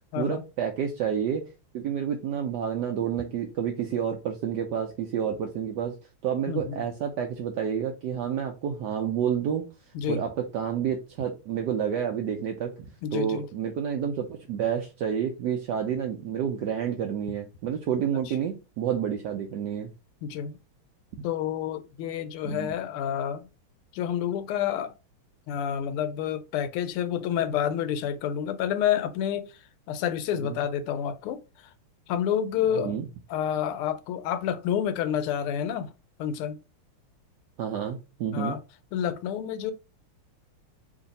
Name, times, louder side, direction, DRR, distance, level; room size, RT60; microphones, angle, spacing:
voice 1, 0.1-1.4 1.7-6.0 6.2-9.7 10.1-12.9 13.1-19.9 22.4-22.8 30.4-30.6 32.8-33.1 37.6-38.6, right 8 dB, 80° right, 0.9 m, -29 dB
voice 2, 6.5-6.9 9.9-10.2 13.0-13.4 18.3-18.4 20.2-20.6 21.2-23.5 23.9-24.9 25.5-29.5 29.9-31.4 32.1-32.9 33.3-35.9 36.2-36.6 38.3-38.6 38.9-39.7, left 9 dB, 85° left, 1.5 m, -29 dB
3.2 x 2.7 x 3.9 m
omnidirectional pair, 2.4 m